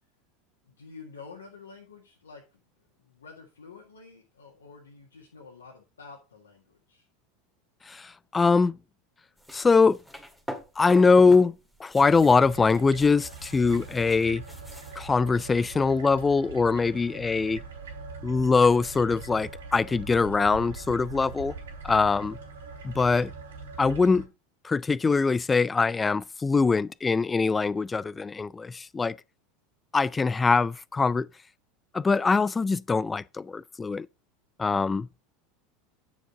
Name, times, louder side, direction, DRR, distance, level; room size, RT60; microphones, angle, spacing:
voice 1, 0.6-2.6 3.0-7.1, left 4 dB, 85° left, 1.9 m, -49 dB
voice 2, 7.9-8.8 9.5-10.0 10.8-14.4 15.0-17.6 18.2-21.5 21.8-22.4 22.8-23.3 23.8-24.3 24.6-29.1 29.9-31.3 31.9-34.1 34.6-35.1, left 4 dB, 20° left, 0.3 m, -23 dB
sound 1, 9.4-11.5 11.7-15.0, equal, 5° left, 2.0 m, -43 dB
sound 2, 12.0-24.2, right 4 dB, 80° right, 2.7 m, -42 dB
9.5 x 6.3 x 3.8 m
hypercardioid pair, 80°, 0 cm